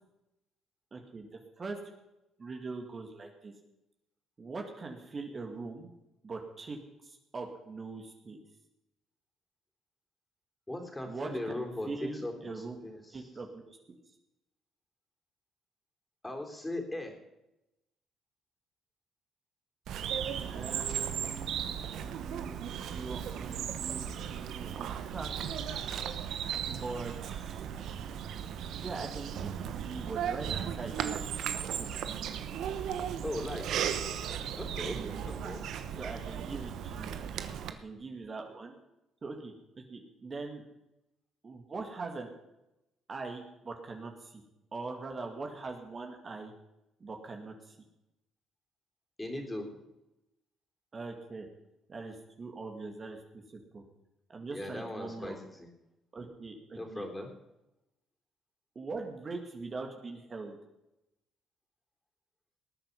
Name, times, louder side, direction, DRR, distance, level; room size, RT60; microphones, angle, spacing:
voice 1, 0.9-1.3 1.6-1.8 2.4-3.5 4.4-5.9 6.2-8.4 11.0-12.8 13.1-13.8 20.4-25.3 26.6-27.6 28.8-31.5 31.8-32.0 34.9-35.2 36.0-37.2 37.8-38.7 39.2-39.5 39.9-40.6 41.4-42.3 43.1-44.4 44.7-46.5 47.0-47.8 50.9-51.5 51.9-53.8 54.3-55.4 56.1-57.1 58.8-60.6, right 3 dB, 40° right, 2 dB, 2.3 m, -42 dB
voice 2, 10.7-13.3 16.2-17.2 33.2-33.9 34.6-35.6 49.2-49.7 54.5-55.7 56.7-57.3, left 1 dB, 15° left, 3 dB, 3.8 m, -39 dB
Bird vocalization bird call bird song, 19.9-37.7, right 9 dB, 70° right, 1.1 m, -36 dB
19.5 x 9.0 x 5.4 m, 0.92 s
supercardioid pair, 65°, 0 cm